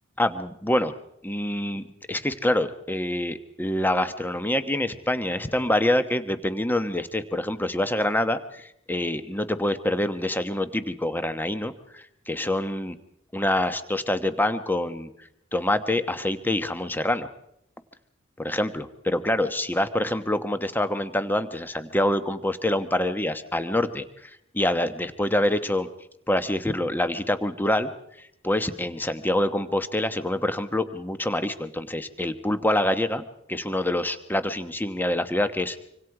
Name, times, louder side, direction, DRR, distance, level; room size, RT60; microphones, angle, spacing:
voice 1, 0.2-0.9 1.2-13.0 13.3-15.1 15.5-17.3 18.4-25.9 26.3-27.9 28.4-35.9, left 1 dB, 10° left, 10 dB, 1.1 m, -26 dB
25.5 x 25.5 x 4.9 m, 0.78 s
head